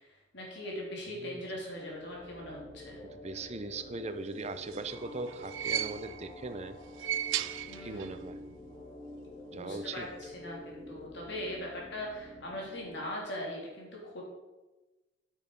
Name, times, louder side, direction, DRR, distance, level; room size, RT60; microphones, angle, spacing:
voice 1, 0.0-3.0 7.7-8.2 9.5-14.2, left 1 dB, 65° left, -3 dB, 3.1 m, -40 dB
sound 1, 1.5-13.0, left 2 dB, 20° left, 3.4 m, -48 dB
voice 2, 3.0-6.8 7.8-8.4 9.5-10.1, right 3 dB, 35° right, 10 dB, 0.6 m, -40 dB
sound 2, 4.4-6.4 6.8-8.3 8.5-8.6 9.7-9.8, right 11 dB, 80° right, 0.4 m, -36 dB
9.0 x 6.4 x 5.3 m, 1.1 s
head